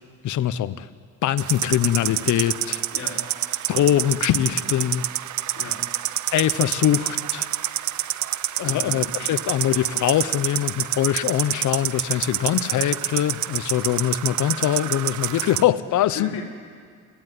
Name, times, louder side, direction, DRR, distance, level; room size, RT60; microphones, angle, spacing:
voice 1, 0.2-0.9 1.2-2.8 3.7-5.1 6.3-7.5 8.6-16.3, left 11 dB, 75° left, 14 dB, 1.0 m, -23 dB
sound 1, 1.4-15.6, right 13 dB, 70° right, 0.8 m, -28 dB
voice 2, 2.9-3.2 5.6-5.8 8.6-9.0 16.1-16.4, left 4 dB, 55° left, -2 dB, 4.2 m, -34 dB
29.5 x 16.0 x 9.7 m, 2.1 s
cardioid pair, 90°, 30 cm